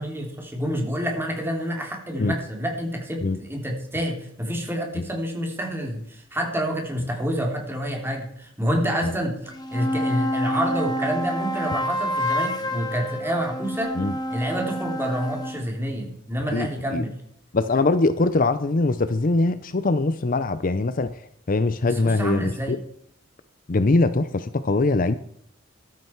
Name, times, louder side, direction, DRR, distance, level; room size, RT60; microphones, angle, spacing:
voice 1, 0.0-9.4 9.7-13.9 14.3-17.1 21.9-22.7, equal, 10° right, 1 dB, 3.4 m, -28 dB
sound 1, 9.4-15.6, equal, 20° left, 1.9 m, -28 dB
voice 2, 16.5-17.0 17.5-21.2 21.5-22.8 23.7-25.1, left 3 dB, 45° left, 13 dB, 0.6 m, -22 dB
14.5 x 12.5 x 4.6 m, 0.70 s
head